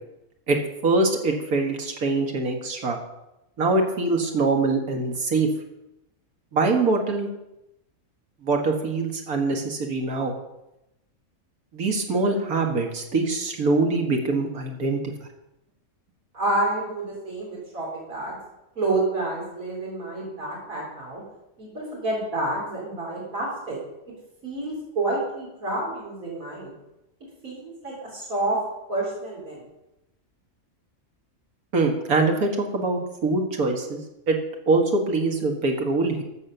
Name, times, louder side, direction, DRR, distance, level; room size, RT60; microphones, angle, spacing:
voice 1, 0.8-3.0 3.6-5.5 6.5-7.3 8.4-10.3 11.7-15.0 31.7-34.0 34.3-34.4 34.7-36.2, right 3 dB, 90° right, 3 dB, 2.1 m, -23 dB
voice 2, 16.3-18.4 18.8-21.2 21.6-23.8 24.4-26.7 27.4-28.6 28.9-29.6, right 2 dB, 70° right, -4 dB, 3.9 m, -29 dB
14.0 x 6.6 x 6.8 m, 0.92 s
omnidirectional pair, 1.5 m